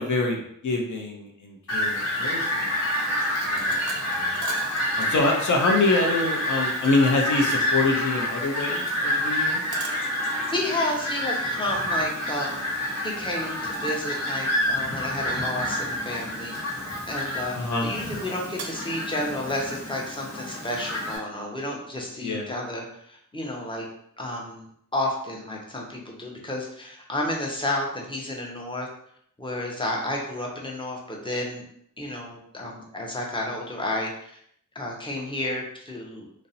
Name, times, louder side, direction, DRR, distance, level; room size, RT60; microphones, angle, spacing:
voice 1, 0.0-2.8 3.4-4.4 5.0-9.6 17.5-17.9 22.2-22.5, left 3 dB, 65° left, 1 dB, 0.6 m, -26 dB
Fowl, 1.7-21.2, left 1 dB, 50° left, 1.0 m, -28 dB
sound 1, 3.5-5.2 6.5-7.2 9.7-10.1 11.8-12.1 13.7-14.0 14.4-15.0 15.7-16.5 18.6-19.1, right 4 dB, 65° right, 0.5 m, -41 dB
voice 2, 10.5-12.7 13.0-16.5 17.1-23.8 24.2-24.6 24.9-28.9 29.4-31.6 32.0-34.3 34.7-36.3, left 1 dB, 15° left, -2 dB, 0.6 m, -31 dB
2.5 x 2.0 x 2.7 m, 0.69 s
wide cardioid pair, 65°, 32 cm